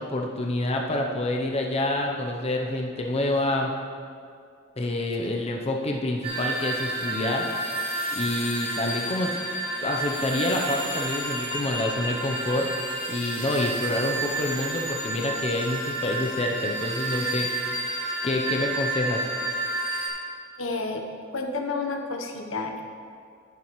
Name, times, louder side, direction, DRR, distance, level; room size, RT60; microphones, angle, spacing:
voice 1, 0.0-3.7 4.8-7.7 8.1-9.3 9.8-17.5 18.2-19.2, left 1 dB, 30° left, 1 dB, 0.6 m, -27 dB
sound 1, 6.2-20.1, right 2 dB, 30° right, 1.4 m, -30 dB
voice 2, 20.6-21.0 21.3-22.8, left 3 dB, 75° left, 4 dB, 0.9 m, -30 dB
10.5 x 8.8 x 3.1 m, 2.3 s
head